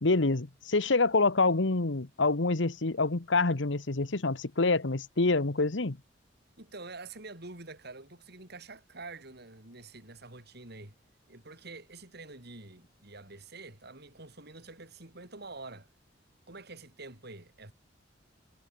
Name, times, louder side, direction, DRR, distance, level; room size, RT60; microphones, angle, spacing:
voice 1, 0.0-6.0, left 3 dB, 70° left, 1.3 m, -26 dB
voice 2, 6.6-11.0 11.3-15.9 16.5-17.7, right 3 dB, 60° right, 5.6 m, -47 dB
head